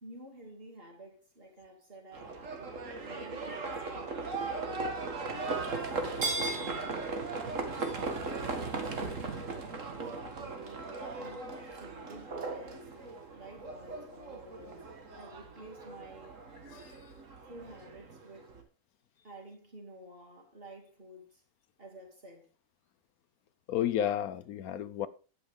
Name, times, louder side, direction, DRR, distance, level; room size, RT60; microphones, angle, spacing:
voice 1, 0.0-4.9 5.3-6.4 9.1-9.6 9.9-16.4 17.4-18.5 19.2-21.4 21.8-22.5, right 1 dB, 40° right, 3.0 m, -51 dB
Livestock farm animals working animals, 2.1-18.6, right 3 dB, 60° right, 2.0 m, -37 dB
voice 2, 23.7-25.1, left 10 dB, 80° left, 1.2 m, -32 dB
11.5 x 8.8 x 3.7 m
omnidirectional pair, 1.5 m